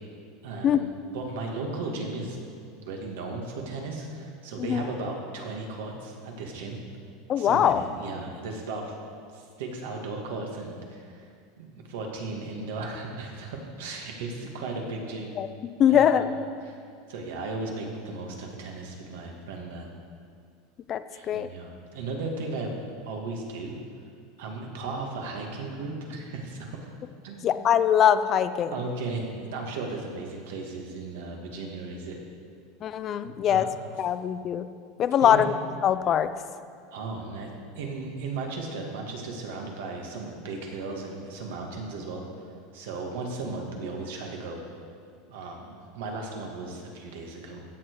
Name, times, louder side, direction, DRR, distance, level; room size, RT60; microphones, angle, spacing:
voice 1, 0.4-2.4 2.8-6.8 7.4-8.9 9.3-11.3 11.6-15.4 15.9-16.3 16.6-16.8 17.1-19.9 21.1-23.8 24.4-26.9 27.2-27.5 28.7-32.2 33.5-33.7 35.2-35.5 36.9-37.5 37.8-42.2 42.7-44.6 45.3-47.6, right 3 dB, 80° right, 1 dB, 2.1 m, -36 dB
voice 2, 7.3-7.8 15.4-16.3 20.9-21.5 27.4-28.7 32.8-33.7 34.0-34.7 35.0-35.5 35.8-36.3, left 9 dB, 30° left, 12 dB, 0.5 m, -22 dB
15.5 x 7.3 x 4.8 m, 2.2 s
supercardioid pair, 150°, 0 cm